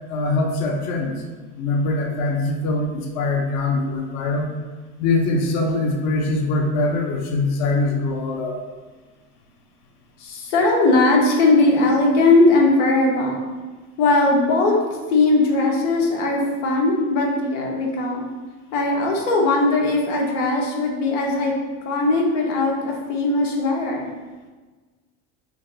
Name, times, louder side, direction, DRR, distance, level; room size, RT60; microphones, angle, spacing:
voice 1, 0.1-1.2 1.5-4.5 5.0-8.6, left 2 dB, 50° left, 1 dB, 0.5 m, -23 dB
voice 2, 10.2-13.4 14.0-14.8 15.1-18.2 18.7-21.5 21.8-24.1, left 2 dB, 90° left, -1 dB, 0.7 m, -19 dB
3.4 x 2.4 x 2.3 m, 1.3 s
supercardioid pair, 105°, 36 cm